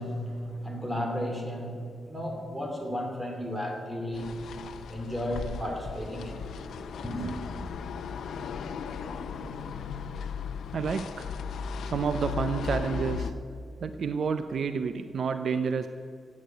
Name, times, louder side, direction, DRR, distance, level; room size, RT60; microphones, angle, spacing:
voice 1, 0.0-1.8 2.1-4.3 4.9-6.5 7.0-7.3, equal, 10° right, 1 dB, 2.5 m, -33 dB
sound 1, 4.1-13.3, left 6 dB, 75° left, 0.8 m, -36 dB
voice 2, 10.7-11.3 11.9-13.3 13.8-15.9, right 6 dB, 50° right, 9 dB, 0.5 m, -29 dB
16.0 x 8.7 x 9.0 m, 2.5 s
wide cardioid pair, 175°, 0 cm